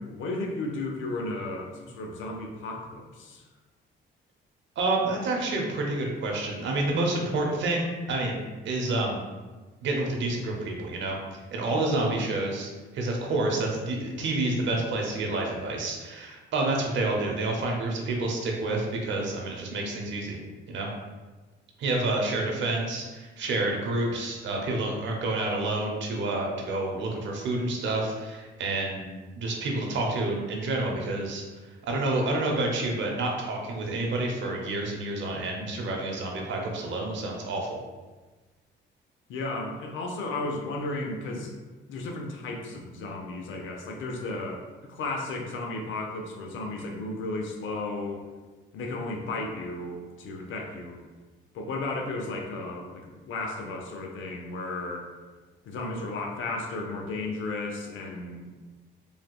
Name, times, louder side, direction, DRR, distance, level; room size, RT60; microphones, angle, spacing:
voice 1, 0.0-3.4 39.3-41.6 41.9-48.2 48.7-51.0 51.5-55.1 55.6-58.6, left 2 dB, 80° left, 1 dB, 0.5 m, -34 dB
voice 2, 4.8-9.2 9.8-11.2 11.5-20.4 20.7-20.9 21.8-29.1 29.4-31.4 31.8-37.8, right 2 dB, 70° right, 0 dB, 0.7 m, -29 dB
3.3 x 2.8 x 2.3 m, 1.3 s
cardioid pair, 90°, 20 cm